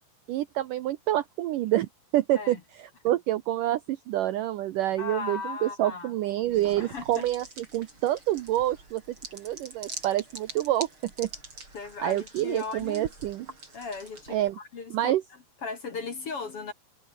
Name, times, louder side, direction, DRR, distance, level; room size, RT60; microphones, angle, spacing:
voice 1, 0.3-9.0 9.3-11.3 12.0-13.5 14.3-14.6 14.9-15.2, right 14 dB, 80° right, 1.9 m, -27 dB
voice 2, 5.0-6.1 6.8-7.3 11.7-13.1 13.7-15.2 15.6-16.7, left 4 dB, 45° left, 2.3 m, -37 dB
sound 1, 6.4-14.5, right 3 dB, 30° right, 7.8 m, -45 dB
omnidirectional pair, 4.8 m